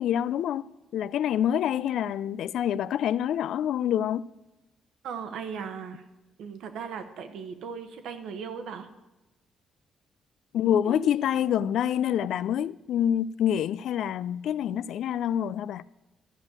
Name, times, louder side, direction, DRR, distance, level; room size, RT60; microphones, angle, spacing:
voice 1, 0.0-4.3 10.5-15.8, left 10 dB, 75° left, 0.3 m, -27 dB
voice 2, 5.0-6.0 6.4-8.9 10.9-11.1, right 6 dB, 80° right, 1.1 m, -37 dB
12.5 x 5.4 x 8.1 m
cardioid pair, 90°, 0 cm